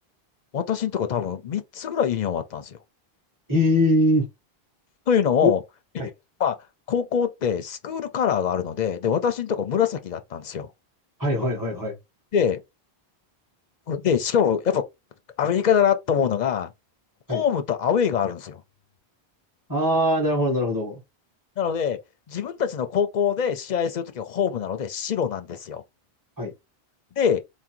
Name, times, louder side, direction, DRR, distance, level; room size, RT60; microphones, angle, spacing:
voice 1, 0.5-2.8 5.1-5.6 6.4-6.6 6.9-10.7 12.3-12.6 13.9-14.8 15.4-16.7 17.3-18.6 21.6-22.0 22.3-25.8 27.2-27.4, left 8 dB, 50° left, 0.6 m, -24 dB
voice 2, 3.5-4.3 5.4-5.5 6.0-6.1 11.2-12.0 17.3-17.4 19.7-21.0 26.4-26.5, left 1 dB, 20° right, 1.6 m, -22 dB
3.8 x 2.1 x 4.4 m
omnidirectional pair, 1.0 m